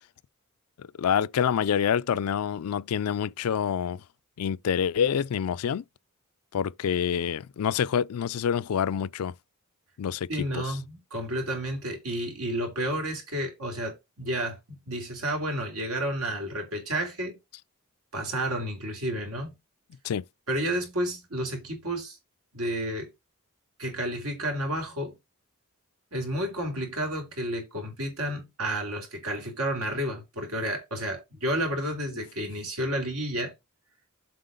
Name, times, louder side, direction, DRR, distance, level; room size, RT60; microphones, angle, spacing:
voice 1, 0.8-4.0 4.4-5.8 6.5-9.3 10.0-10.8 20.0-20.2, left 8 dB, 80° left, 0.4 m, -27 dB
voice 2, 10.3-14.6 14.9-17.4 18.1-19.5 20.5-22.2 22.5-23.1 23.8-25.1 26.1-33.5, right 1 dB, 75° right, 3.0 m, -31 dB
7.7 x 5.6 x 3.8 m
head